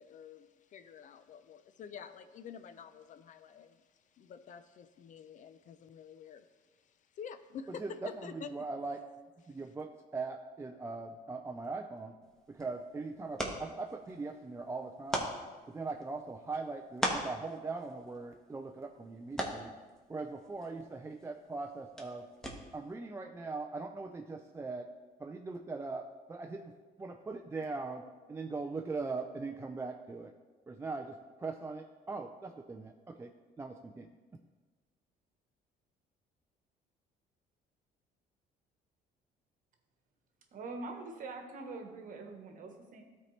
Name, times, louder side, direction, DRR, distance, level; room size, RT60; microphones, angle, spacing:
voice 1, 0.0-3.8 4.1-6.5 7.2-8.5, left 7 dB, 50° left, 11 dB, 0.4 m, -48 dB
voice 2, 7.7-9.0 9.5-12.1 12.5-15.3 15.7-19.7 20.1-22.3 22.7-24.9 25.2-26.7 27.0-28.0 28.3-30.3 30.7-34.1, right 3 dB, 15° right, 4 dB, 0.4 m, -40 dB
sound 1, 12.2-22.9, equal, 5° left, 1.1 m, -42 dB
voice 3, 40.5-43.0, right 3 dB, 50° right, 4 dB, 1.2 m, -44 dB
13.0 x 4.3 x 3.2 m, 1.3 s
cardioid pair, 110°, 17 cm